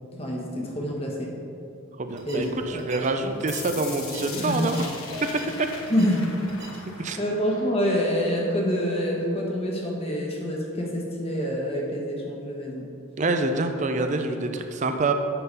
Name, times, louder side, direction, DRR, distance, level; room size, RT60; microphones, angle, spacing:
voice 1, 0.1-1.3 2.3-3.4 4.4-4.7 5.9-6.3 7.2-12.9, equal, 30° left, -1 dB, 1.1 m, -27 dB
voice 2, 2.0-4.9 5.6-5.7 7.0-7.2 13.2-15.1, right 3 dB, 35° right, 6 dB, 0.4 m, -26 dB
sound 1, 2.1-7.1, right 2 dB, 55° right, 1.4 m, -45 dB
sound 2, 3.5-9.5, left 5 dB, 75° left, 0.9 m, -41 dB
sound 3, 5.1-6.3, left 4 dB, 50° left, 1.0 m, -41 dB
8.0 x 3.9 x 5.3 m, 2.7 s
head